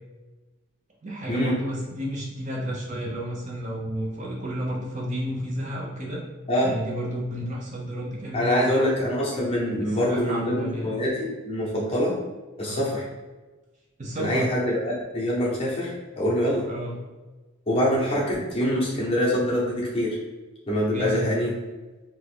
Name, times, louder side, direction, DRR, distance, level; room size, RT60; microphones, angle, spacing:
voice 1, 1.0-6.2 6.6-8.9 9.8-11.0 12.7-12.9 14.0-14.5 16.7-17.0 20.9-21.3, equal, 35° right, -3 dB, 0.4 m, -32 dB
voice 2, 8.3-12.2 12.6-13.1 14.2-16.6 17.7-20.2 20.7-21.5, equal, 25° left, -5 dB, 0.8 m, -24 dB
2.9 x 2.4 x 3.3 m, 1.2 s
head